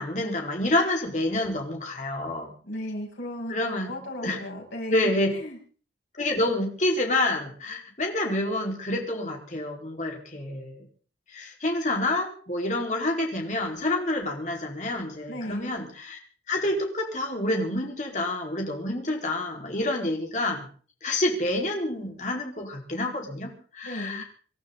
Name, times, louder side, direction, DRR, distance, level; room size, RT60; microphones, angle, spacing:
voice 1, 0.0-2.5 3.5-3.9 4.2-4.4 4.9-5.3 6.2-10.9 11.3-16.2 16.5-20.7 21.0-24.2, left 1 dB, 40° left, 1 dB, 4.6 m, -28 dB
voice 2, 2.6-5.6 15.3-15.7 23.8-24.2, left 1 dB, 85° left, -2 dB, 8.0 m, -36 dB
27.0 x 12.5 x 4.0 m, 0.43 s
head